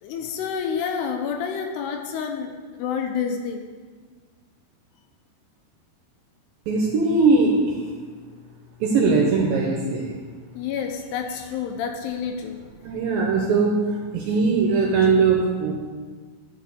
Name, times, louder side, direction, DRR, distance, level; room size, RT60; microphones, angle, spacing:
voice 1, 0.0-2.5 2.8-3.6 10.6-12.6, left 7 dB, 80° left, 4 dB, 2.7 m, -28 dB
voice 2, 6.7-7.7 8.8-10.2 12.8-15.7, right 4 dB, 75° right, 0 dB, 2.2 m, -20 dB
11.5 x 4.1 x 6.9 m, 1.5 s
omnidirectional pair, 5.0 m